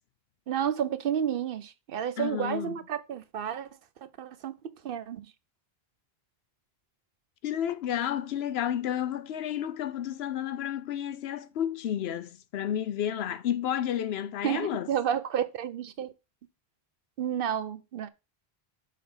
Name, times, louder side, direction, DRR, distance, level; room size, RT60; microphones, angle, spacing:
voice 1, 0.5-3.7 4.2-4.5 4.8-5.3 14.4-16.1 17.2-18.1, right 9 dB, 65° right, 0.8 m, -31 dB
voice 2, 2.2-2.8 7.4-14.9, left 10 dB, 90° left, 0.9 m, -31 dB
6.5 x 3.7 x 5.4 m
omnidirectional pair, 1.0 m